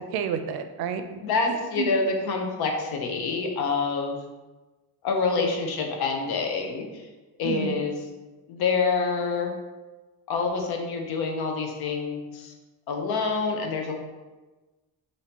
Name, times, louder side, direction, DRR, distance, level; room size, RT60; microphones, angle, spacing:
voice 1, 0.1-1.9 7.4-7.8, right 7 dB, 85° right, 8 dB, 0.5 m, -31 dB
voice 2, 1.2-4.2 5.0-6.8 7.4-8.0 8.5-9.5 10.3-12.5 12.9-14.0, left 4 dB, 90° left, 2 dB, 0.8 m, -27 dB
5.2 x 2.7 x 2.8 m, 1.2 s
cardioid pair, 120°, 37 cm